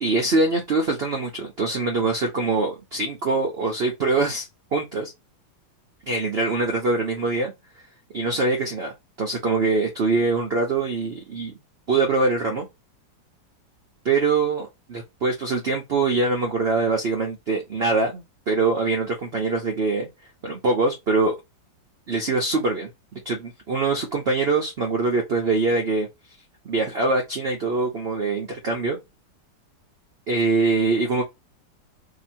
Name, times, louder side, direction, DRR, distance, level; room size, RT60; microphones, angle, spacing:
voice 1, 0.0-5.1 6.1-7.5 8.1-11.5 11.9-12.7 14.0-20.1 20.4-21.3 22.1-22.9 23.2-26.1 26.6-29.0 30.3-31.2, right 3 dB, 75° right, 0.5 m, -23 dB
2.8 x 2.7 x 4.3 m
omnidirectional pair, 2.0 m